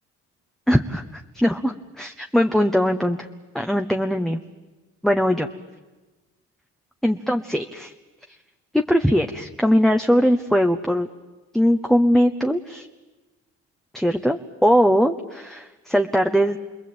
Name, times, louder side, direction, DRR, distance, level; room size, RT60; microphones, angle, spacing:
voice 1, 0.7-3.3 3.5-4.4 5.0-5.5 7.0-7.9 8.7-11.1 11.5-12.9 13.9-16.6, equal, ahead, 4 dB, 1.2 m, -20 dB
29.5 x 21.0 x 9.0 m, 1.2 s
cardioid pair, 90°, 30 cm